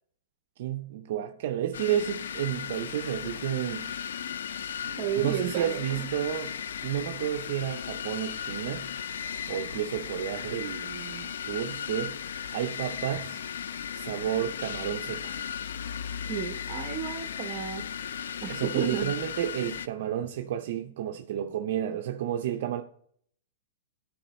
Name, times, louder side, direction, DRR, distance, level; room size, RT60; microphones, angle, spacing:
voice 1, 0.6-3.9 4.9-6.5 6.8-8.9 9.5-12.2 12.5-13.4 13.9-15.4 18.5-22.8, right 10 dB, 60° right, 0.5 m, -31 dB
sound 1, 1.7-19.9, left 8 dB, 85° left, 0.3 m, -36 dB
voice 2, 5.0-6.1 16.3-17.8 18.4-19.1, right 8 dB, 40° right, 0.9 m, -32 dB
10.5 x 4.8 x 4.2 m
hypercardioid pair, 150°, 0 cm